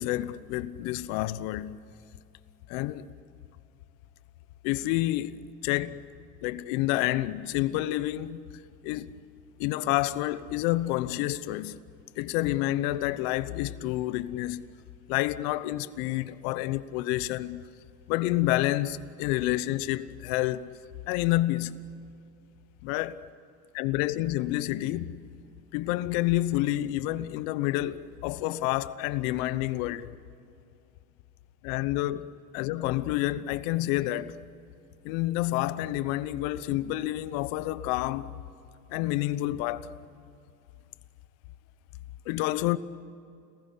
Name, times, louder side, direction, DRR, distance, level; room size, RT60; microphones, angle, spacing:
voice 1, 0.0-1.8 2.7-3.1 4.6-6.0 6.4-8.5 8.8-9.1 9.6-11.8 12.2-14.7 15.1-17.7 18.1-20.7 21.1-21.8 22.8-23.2 23.7-25.2 25.7-30.1 31.6-32.3 32.5-34.4 35.0-38.3 38.9-39.9 42.3-42.8, left 16 dB, 75° left, 1.1 m, -29 dB
29.5 x 20.0 x 9.8 m
hypercardioid pair, 65°, 42 cm